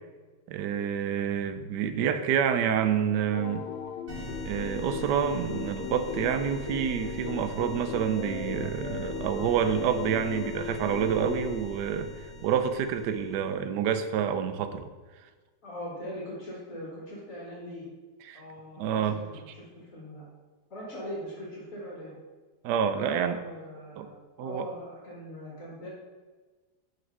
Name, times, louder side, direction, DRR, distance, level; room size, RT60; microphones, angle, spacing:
voice 1, 0.5-3.7 4.4-14.9 18.2-18.4 18.8-19.2 22.6-23.4 24.0-24.1 24.4-24.7, right 8 dB, 70° right, 10 dB, 1.2 m, -28 dB
sound 1, 3.3-11.6, left 7 dB, 80° left, 1.4 m, -37 dB
sound 2, 4.1-13.5, equal, 40° right, 1.8 m, -42 dB
voice 2, 15.6-17.9 18.3-20.2 20.7-22.2 22.9-25.9, equal, 45° left, -6 dB, 2.4 m, -41 dB
6.0 x 6.0 x 5.4 m, 1.3 s
omnidirectional pair, 2.1 m